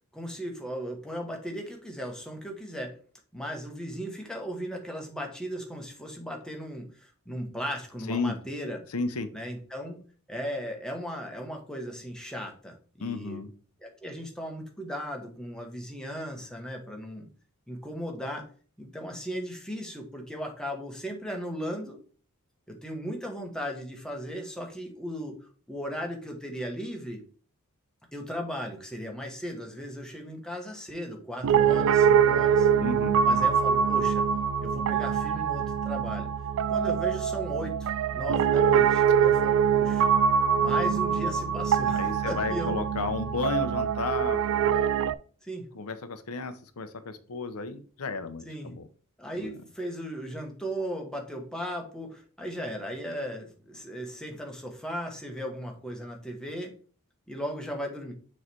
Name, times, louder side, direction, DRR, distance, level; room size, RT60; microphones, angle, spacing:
voice 1, 0.1-3.0 3.3-8.8 9.3-10.0 10.3-13.4 13.8-17.3 17.7-18.5 18.8-22.0 22.7-27.2 28.1-32.7 33.2-34.2 34.6-36.3 36.7-40.1 40.5-42.8 45.4-45.7 48.4-48.7 49.2-56.7 57.3-58.1, equal, 5° left, 2 dB, 1.2 m, -37 dB
voice 2, 8.9-9.3 13.0-13.5 32.8-33.2 41.9-44.4 45.7-48.8 49.4-49.5, left 4 dB, 75° left, 10 dB, 0.7 m, -33 dB
Piano, 31.4-45.1, right 7 dB, 65° right, 0.3 m, -24 dB
6.5 x 3.2 x 4.4 m, 0.41 s
head